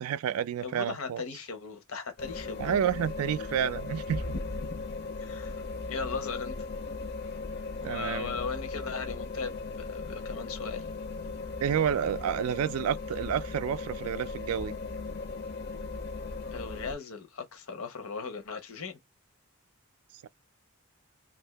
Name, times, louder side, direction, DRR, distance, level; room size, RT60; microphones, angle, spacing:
voice 1, 0.0-1.2 2.6-4.2 7.8-8.4 11.6-14.7 20.2-20.3, right 8 dB, 85° right, 0.3 m, -30 dB
voice 2, 0.6-2.8 4.7-4.8 5.2-6.7 7.8-10.9 16.5-19.0, left 5 dB, 80° left, 0.9 m, -38 dB
sound 1, 2.2-17.0, left 3 dB, 45° left, 0.5 m, -37 dB
2.6 x 2.6 x 3.3 m
head